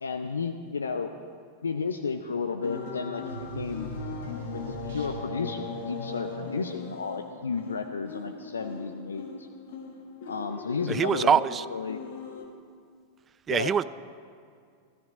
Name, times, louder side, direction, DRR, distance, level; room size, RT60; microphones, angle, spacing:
voice 1, 0.0-1.1 1.6-3.9 4.5-9.5 10.2-11.4 11.7-12.0 13.5-13.7, left 5 dB, 75° left, 7 dB, 0.5 m, -32 dB
sound 1, 2.6-12.4, left 5 dB, 55° left, 1.5 m, -39 dB
sound 2, 3.3-5.6, right 4 dB, 60° right, 2.1 m, -41 dB
voice 2, 10.9-11.6 13.5-13.8, right 7 dB, 20° right, 17 dB, 0.3 m, -23 dB
14.0 x 13.5 x 4.9 m, 2.2 s
figure-of-eight pair, 90°, 0 cm